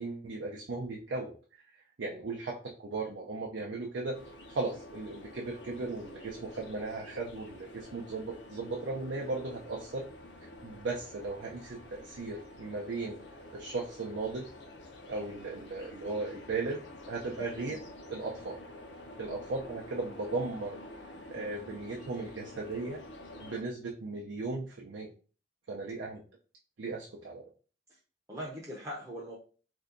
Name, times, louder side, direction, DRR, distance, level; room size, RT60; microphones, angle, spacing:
voice 1, 0.0-4.2 4.5-10.0 10.4-13.2 13.5-14.5 15.1-17.8 18.1-18.6 19.2-20.8 21.3-23.0 23.4-25.1 25.7-26.2 26.8-27.4, right 3 dB, 85° right, -2 dB, 0.5 m, -37 dB
sound 1, 4.1-23.6, left 1 dB, 70° left, 0.6 m, -49 dB
voice 2, 28.3-29.4, equal, 15° right, -4 dB, 0.6 m, -41 dB
2.7 x 2.2 x 3.6 m, 0.37 s
head